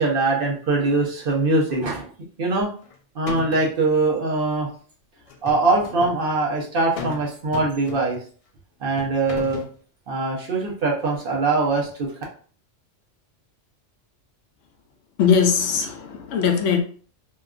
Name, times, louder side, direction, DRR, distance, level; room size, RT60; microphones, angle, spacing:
voice 1, 0.0-2.1 2.4-2.7 3.1-4.7 5.4-8.2 8.8-9.6 10.1-12.1, right 3 dB, 55° right, -1 dB, 0.8 m, -22 dB
sound 1, 2.6-2.9 3.3-3.8 5.3-6.2 7.0-7.2 7.5-8.3 9.0-9.7, left 5 dB, 65° left, 0.3 m, -35 dB
voice 2, 15.2-16.8, left 6 dB, 85° left, 5 dB, 0.9 m, -20 dB
2.8 x 2.3 x 2.3 m, 0.42 s
omnidirectional pair, 1.2 m